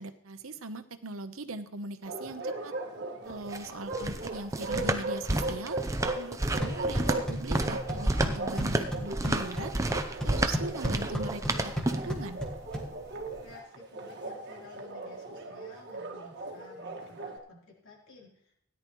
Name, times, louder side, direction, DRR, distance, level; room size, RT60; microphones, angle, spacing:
voice 1, 0.0-2.7 3.2-5.8 6.1-9.7 10.2-12.4, right 2 dB, 75° right, 10 dB, 0.9 m, -40 dB
Bark, 2.0-17.4, right 2 dB, 50° right, 1.7 m, -38 dB
sound 1, 3.3-12.2, right 2 dB, 15° right, 0.6 m, -31 dB
sound 2, 6.4-13.4, equal, 5° left, 1.5 m, -36 dB
voice 2, 13.4-18.5, left 3 dB, 65° left, -3 dB, 3.6 m, -53 dB
17.0 x 10.5 x 3.1 m, 0.70 s
head